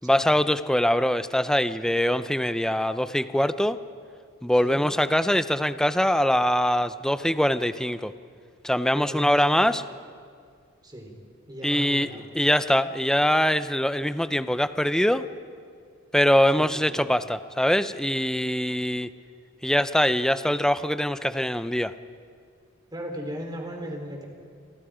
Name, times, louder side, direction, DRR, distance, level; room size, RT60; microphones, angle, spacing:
voice 1, 0.0-3.8 4.4-8.1 8.6-9.8 11.6-12.1 12.3-15.3 16.1-19.1 19.6-21.9, equal, 5° left, 12 dB, 0.6 m, -23 dB
voice 2, 8.9-9.8 10.8-11.1 11.5-12.3 16.5-17.2 22.9-24.3, equal, 20° right, 2 dB, 4.0 m, -37 dB
29.0 x 24.5 x 5.1 m, 2.2 s
head